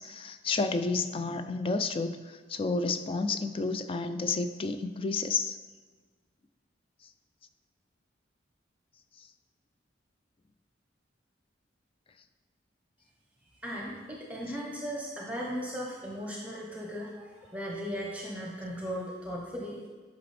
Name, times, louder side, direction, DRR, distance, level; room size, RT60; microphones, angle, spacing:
voice 1, 0.0-5.6, left 3 dB, 30° left, 9 dB, 0.3 m, -31 dB
voice 2, 13.6-19.8, equal, 10° right, -2 dB, 0.8 m, -37 dB
9.7 x 5.8 x 3.3 m, 1.4 s
head